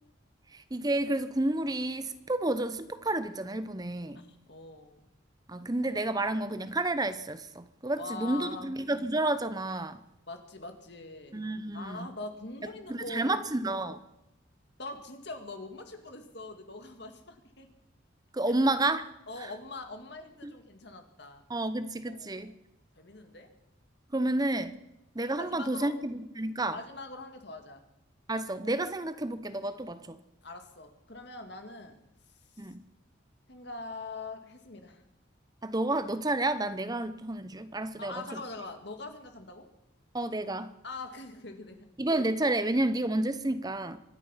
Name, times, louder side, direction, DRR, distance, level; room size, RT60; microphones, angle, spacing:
voice 1, 0.5-4.2 5.5-10.0 11.3-12.1 12.9-14.0 18.3-19.1 19.4-19.5 20.4-20.5 21.5-22.5 24.1-24.8 25.1-26.8 28.3-30.2 32.6-32.8 35.6-38.1 40.1-40.7 42.0-44.0, right 2 dB, 20° right, 0.8 m, -30 dB
voice 2, 4.1-5.0 7.9-8.8 10.3-11.4 11.7-13.5 14.8-17.7 19.3-21.4 22.1-22.5 23.0-23.5 25.4-25.9 26.7-27.8 30.4-32.0 33.5-35.0 38.0-39.7 40.8-41.9, left 3 dB, 55° left, 2.1 m, -43 dB
25.0 x 10.0 x 5.7 m
head